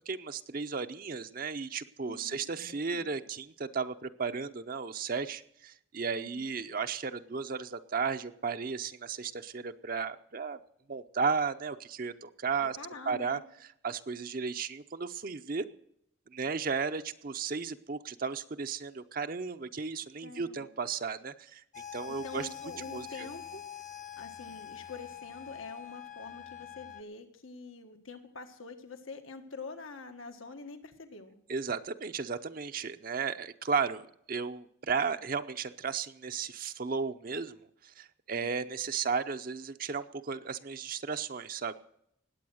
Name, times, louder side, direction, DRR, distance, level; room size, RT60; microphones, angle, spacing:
voice 1, 0.1-10.6 10.9-12.8 13.1-13.4 13.8-15.7 16.3-22.5 22.9-23.3 31.5-37.6 37.8-41.8, right 5 dB, 45° right, 9 dB, 0.6 m, -34 dB
voice 2, 2.0-3.1 6.1-6.5 12.6-13.4 20.2-20.7 22.1-23.6 24.2-31.4, left 4 dB, 90° left, 6 dB, 1.7 m, -46 dB
sound 1, 21.7-27.0, left 10 dB, 40° left, 0.8 m, -45 dB
19.5 x 8.5 x 6.3 m, 0.73 s
head